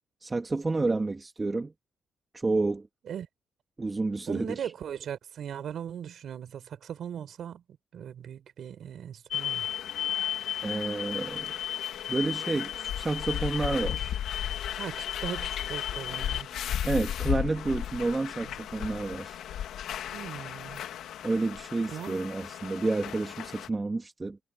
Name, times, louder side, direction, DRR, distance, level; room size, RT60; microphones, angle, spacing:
voice 1, 0.2-1.7 2.3-2.9 3.8-4.5 10.6-11.5 12.1-14.1 16.8-19.4 21.2-24.4, right 3 dB, 20° right, 2.7 m, -30 dB
voice 2, 4.3-7.6 7.9-9.7 14.8-16.6 20.1-20.8 21.9-22.2, right 9 dB, 65° right, 4.4 m, -39 dB
sound 1, 9.3-23.7, left 10 dB, 85° left, 2.4 m, -34 dB
cardioid pair, 115°, 0 cm